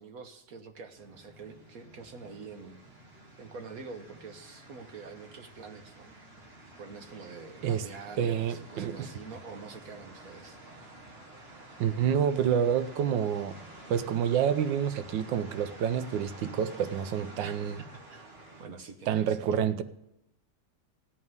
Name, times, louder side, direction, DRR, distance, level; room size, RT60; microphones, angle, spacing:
voice 1, 0.0-2.8 3.4-10.6 17.4-18.3 18.6-19.5, right 4 dB, 55° right, 1.3 m, -46 dB
sound 1, 0.9-18.7, right 1 dB, 35° right, 1.8 m, -50 dB
voice 2, 8.2-9.1 11.8-13.6 13.9-17.7 19.1-19.8, right 8 dB, 80° right, 1.4 m, -28 dB
16.0 x 5.4 x 9.4 m
omnidirectional pair, 2.0 m